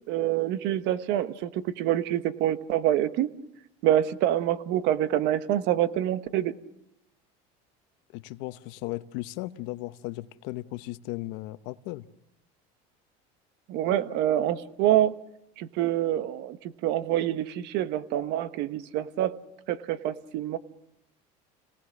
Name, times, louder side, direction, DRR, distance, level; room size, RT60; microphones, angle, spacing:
voice 1, 0.1-3.3 3.8-6.5 13.7-15.1 15.6-19.3 19.7-20.6, right 12 dB, 65° right, 1.2 m, -26 dB
voice 2, 8.1-12.1, left 18 dB, 75° left, 1.0 m, -36 dB
29.5 x 18.0 x 6.3 m
cardioid pair, 135°, 19 cm